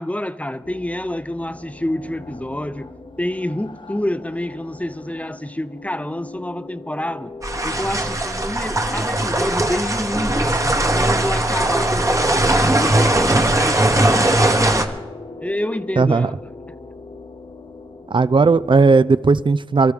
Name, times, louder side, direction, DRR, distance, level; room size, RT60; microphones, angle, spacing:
voice 1, 0.0-2.9 3.2-7.3 7.6-15.0 15.4-16.4, left 1 dB, 15° left, 0.6 m, -28 dB
sound 1, 0.6-18.9, left 3 dB, 50° left, 0.9 m, -39 dB
sound 2, 7.4-14.8, right 1 dB, 30° right, 1.1 m, -19 dB
voice 2, 16.0-16.3 18.1-19.9, right 4 dB, 55° right, 0.4 m, -15 dB
22.5 x 13.5 x 3.5 m
wide cardioid pair, 45°, 10 cm